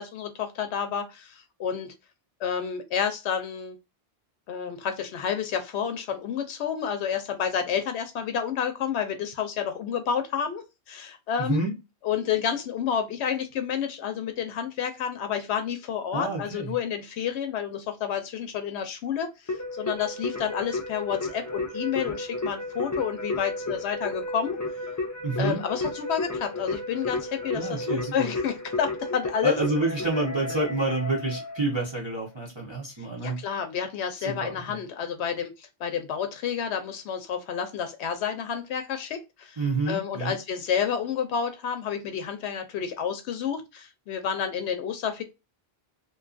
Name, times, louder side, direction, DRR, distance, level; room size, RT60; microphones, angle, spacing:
voice 1, 0.0-1.9 2.4-3.8 4.5-11.6 12.0-24.6 25.4-29.6 33.0-39.6 39.9-45.2, left 8 dB, 85° left, 0.8 m, -30 dB
voice 2, 11.4-11.8 16.1-16.7 25.2-25.6 27.5-28.3 29.4-33.4 34.2-34.8 39.6-40.3, right 2 dB, 30° right, 0.7 m, -28 dB
Keyboard (musical), 19.5-31.9, left 2 dB, 30° left, 0.4 m, -33 dB
2.6 x 2.3 x 2.4 m
omnidirectional pair, 1.1 m